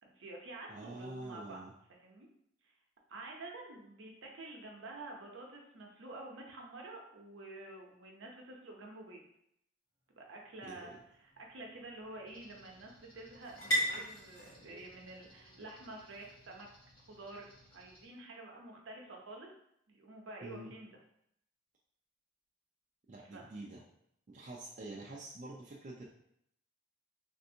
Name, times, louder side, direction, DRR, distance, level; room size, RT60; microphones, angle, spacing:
voice 1, 0.0-1.6 1.9-2.3 2.6-2.7 3.1-9.3 10.2-10.9 11.2-16.7 17.1-19.5 19.9-20.9 23.2-23.4, right 2 dB, 70° right, 0 dB, 0.7 m, -49 dB
voice 2, 0.7-1.7 10.6-11.0 20.4-20.7 23.1-23.8 24.3-26.1, right 2 dB, 35° right, -3 dB, 0.3 m, -46 dB
sound 1, 10.1-17.9, right 1 dB, 60° left, 1.5 m, -42 dB
sound 2, 12.3-18.1, equal, 25° left, 0.7 m, -63 dB
3.3 x 2.6 x 2.7 m, 0.73 s
head